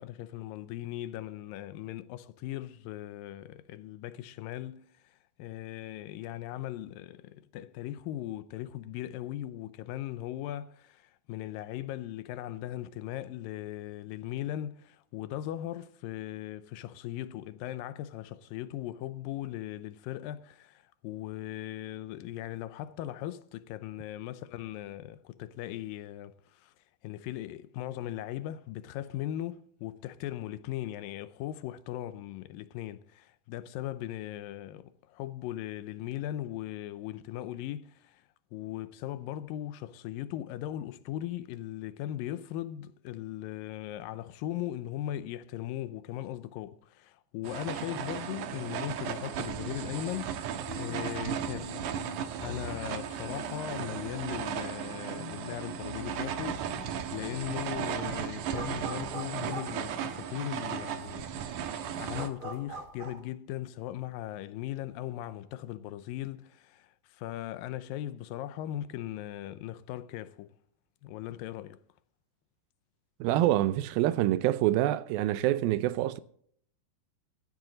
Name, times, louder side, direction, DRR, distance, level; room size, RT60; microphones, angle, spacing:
voice 1, 0.0-26.7 27.0-51.8 52.4-70.6 71.0-71.8, left 13 dB, 80° left, 2.3 m, -39 dB
sound 1, 47.4-62.3, right 8 dB, 70° right, 2.3 m, -36 dB
sound 2, 50.7-57.5, left 6 dB, 65° left, 4.9 m, -46 dB
sound 3, 57.0-57.1 57.4-60.5 61.0-61.1 61.3-63.2, right 3 dB, 30° right, 2.6 m, -42 dB
voice 2, 73.2-76.2, right 14 dB, 85° right, 2.5 m, -26 dB
15.5 x 12.0 x 3.9 m
omnidirectional pair, 4.1 m